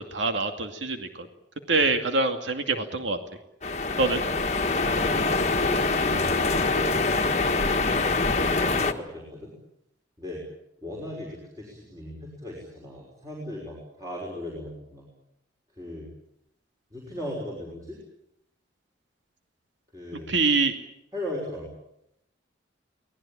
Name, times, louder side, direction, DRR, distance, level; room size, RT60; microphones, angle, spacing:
voice 1, 0.1-1.3 1.7-3.2 4.0-4.2 20.1-20.7, right 3 dB, 90° right, 5 dB, 2.4 m, -25 dB
sound 1, 3.6-8.9, left 3 dB, 35° left, 1.5 m, -24 dB
voice 2, 4.8-9.5 10.2-10.4 10.8-15.1 15.7-16.1 16.9-18.0 19.9-20.3 21.1-21.7, left 1 dB, 20° right, -3 dB, 5.7 m, -38 dB
24.0 x 19.0 x 8.9 m, 0.81 s
head